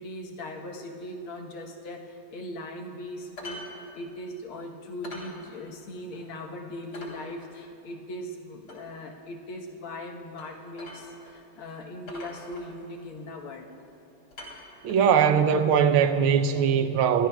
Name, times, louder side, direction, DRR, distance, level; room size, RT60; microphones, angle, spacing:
voice 1, 0.0-3.6 3.9-13.7, left 1 dB, 85° left, 2.0 m, -39 dB
sound 1, 3.4-3.7 4.0-4.1 4.4-4.5 5.0-5.3 5.8-5.9 6.3-6.4 6.9-7.2 8.7-8.8 10.4-10.5 10.8-11.3 11.6-11.7 12.1-13.0 13.7-14.0 14.3-15.1 16.1-16.2, left 1 dB, 60° left, 3.6 m, -43 dB
voice 2, 14.8-17.3, right 7 dB, 85° right, 1.5 m, -21 dB
28.0 x 13.5 x 2.3 m
omnidirectional pair, 2.3 m